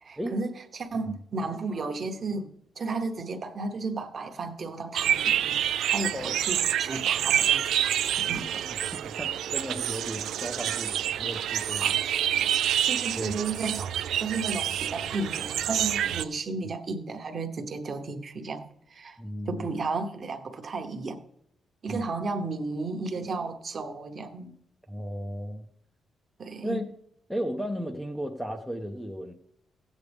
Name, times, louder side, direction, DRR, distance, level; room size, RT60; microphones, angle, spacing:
voice 1, 0.0-2.5 2.8-5.6 5.9-7.7 8.0-8.7 11.8-12.1 12.7-19.2 19.5-21.2 21.8-24.5 26.4-26.8, right 3 dB, 35° right, 1.0 m, -33 dB
sound 1, 5.0-16.2, right 10 dB, 85° right, 0.4 m, -27 dB
voice 2, 8.3-12.0 13.2-13.4 19.2-19.7 21.9-22.0 24.9-25.7 26.6-26.8 27.3-29.3, equal, ahead, 0.6 m, -35 dB
16.0 x 8.3 x 3.5 m
wide cardioid pair, 170°, 0 cm